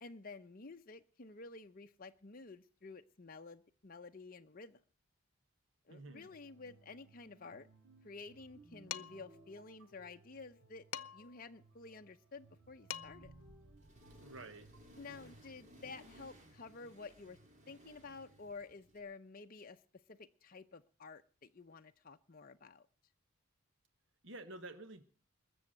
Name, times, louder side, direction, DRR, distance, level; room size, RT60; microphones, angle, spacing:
voice 1, 0.0-4.8 5.9-7.7 8.0-10.9 11.1-13.3 15.0-17.4 17.7-19.8 20.1-22.9, left 4 dB, 40° left, 5 dB, 0.7 m, -51 dB
voice 2, 5.9-6.3 14.2-14.7 24.2-25.0, right 2 dB, 60° right, 10 dB, 1.2 m, -50 dB
sound 1, 6.2-15.5, right 2 dB, 85° right, 4.9 m, -62 dB
Dishes pots and pans, 8.9-9.3 10.9-11.4 12.6-12.7 12.9-13.4, left 10 dB, 80° left, 0.7 m, -44 dB
Accelerating revving vroom, 13.8-19.0, equal, 35° right, 3.3 m, -60 dB
21.0 x 7.1 x 7.7 m, 0.39 s
head